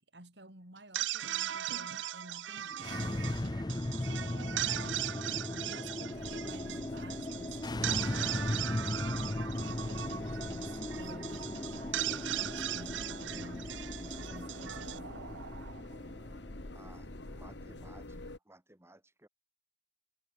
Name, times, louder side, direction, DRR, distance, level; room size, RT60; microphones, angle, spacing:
voice 1, 0.0-3.4 3.8-9.4 9.8-15.3, right 1 dB, 65° right, 6.7 m, -52 dB
sound 1, 0.8-16.0, right 12 dB, 90° right, 0.6 m, -39 dB
sound 2, 2.7-18.0, left 1 dB, 20° left, 0.7 m, -38 dB
sound 3, 6.1-18.4, left 1 dB, 70° left, 1.8 m, -47 dB
voice 2, 16.7-19.3, right 1 dB, 15° right, 2.8 m, -58 dB
head